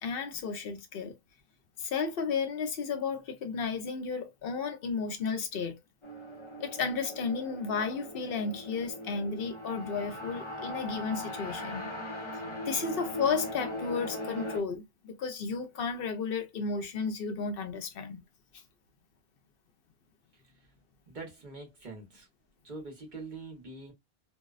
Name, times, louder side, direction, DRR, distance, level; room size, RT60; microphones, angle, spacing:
voice 1, 0.0-1.1 1.8-5.8 6.6-11.9 12.6-18.2, left 5 dB, 65° left, 0.8 m, -33 dB
sound 1, 6.0-14.6, left 1 dB, 30° left, 0.9 m, -40 dB
voice 2, 21.1-22.3 22.6-23.9, right 3 dB, 50° right, 1.0 m, -44 dB
2.6 x 2.1 x 2.3 m
omnidirectional pair, 1.1 m